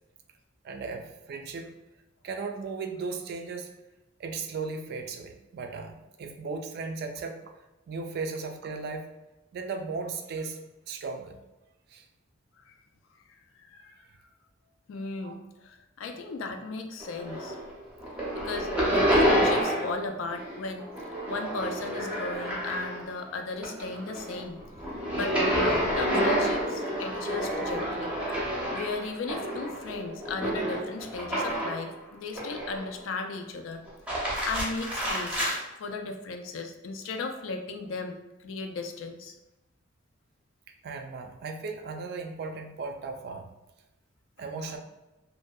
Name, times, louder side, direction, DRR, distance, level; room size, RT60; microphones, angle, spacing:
voice 1, 0.6-1.7 2.2-3.7 4.2-7.4 7.9-9.1 9.5-11.4 11.9-12.0 15.2-15.3 40.8-43.5 44.4-44.8, right 4 dB, 55° right, 5 dB, 0.3 m, -36 dB
voice 2, 13.6-14.0 14.9-17.6 18.3-24.6 25.1-28.2 28.4-33.8 34.1-35.4 35.8-39.3, left 3 dB, 80° left, 5 dB, 0.3 m, -36 dB
sound 1, 17.0-17.7 18.0-20.0 20.3-23.2 23.5-31.9 32.3-33.0 33.9-35.6, equal, 5° right, 0.5 m, -29 dB
2.6 x 2.1 x 2.2 m, 1.0 s
head